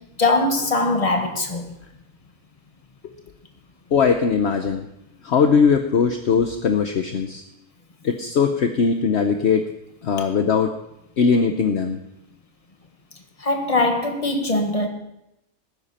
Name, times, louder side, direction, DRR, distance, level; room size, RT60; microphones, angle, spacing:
voice 1, 0.2-1.7 13.4-14.9, left 2 dB, 25° left, 1.6 m, -21 dB
voice 2, 3.9-4.9 5.2-7.4 8.0-9.7 10.0-10.7 11.2-12.0, left 5 dB, 55° left, 1.0 m, -20 dB
18.5 x 10.0 x 4.2 m
omnidirectional pair, 1.4 m